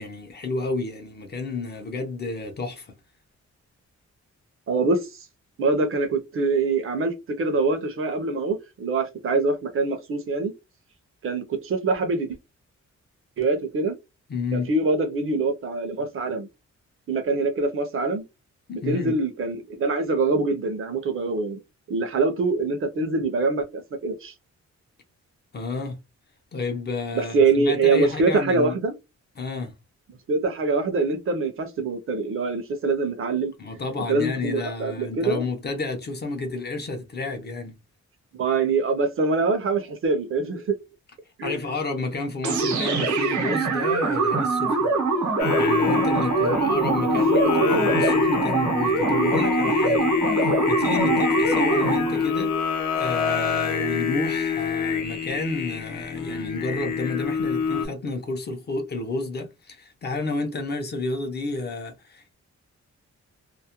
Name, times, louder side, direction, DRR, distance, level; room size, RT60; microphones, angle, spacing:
voice 1, 0.0-2.9 14.3-14.7 18.7-19.1 25.5-26.0 26.5-28.8 29.4-29.8 33.6-37.8 41.4-44.9 45.5-52.6 52.9-62.3, left 3 dB, 35° left, 0.5 m, -31 dB
voice 2, 4.7-5.2 5.6-10.5 11.2-12.4 13.4-14.0 14.5-16.5 17.1-18.2 18.7-21.6 21.9-24.3 27.1-28.9 30.3-33.5 34.1-35.5 38.3-40.8 41.4-41.6 46.3-47.9 49.1-49.3 51.0-51.2, right 3 dB, 45° right, 0.5 m, -24 dB
sound 1, 42.4-52.3, right 3 dB, 80° right, 0.8 m, -23 dB
Singing, 45.4-57.8, left 7 dB, 85° left, 0.6 m, -26 dB
2.3 x 2.0 x 2.7 m
wide cardioid pair, 180°, 29 cm